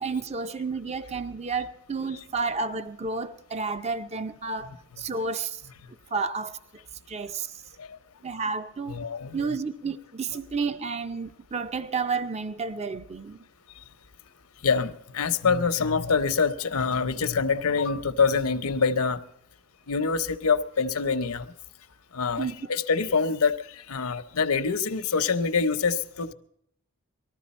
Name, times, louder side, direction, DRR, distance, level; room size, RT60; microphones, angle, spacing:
voice 1, 0.0-5.6 6.1-6.6 7.1-7.6 8.2-9.0 9.3-13.4 22.4-22.6, right 4 dB, 30° right, 0.5 m, -31 dB
voice 2, 8.9-9.6 14.6-19.2 19.9-21.5 22.1-26.3, left 5 dB, 85° left, 0.8 m, -25 dB
19.5 x 14.0 x 4.2 m
head